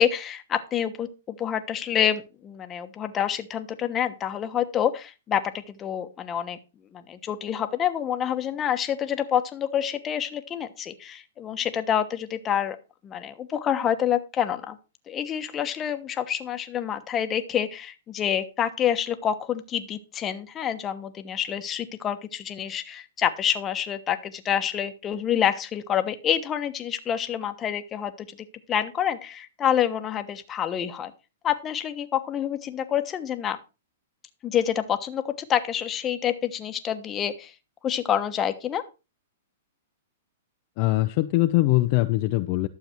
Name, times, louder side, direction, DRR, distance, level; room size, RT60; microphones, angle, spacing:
voice 1, 0.0-6.6 6.9-12.8 13.0-14.8 15.1-28.4 28.7-31.1 31.4-33.6 34.4-37.5 37.8-38.8, left 9 dB, 20° left, 9 dB, 1.2 m, -27 dB
voice 2, 40.8-42.7, left 18 dB, 45° left, 8 dB, 0.6 m, -22 dB
12.0 x 7.1 x 4.5 m, 0.30 s
hypercardioid pair, 135°, 0 cm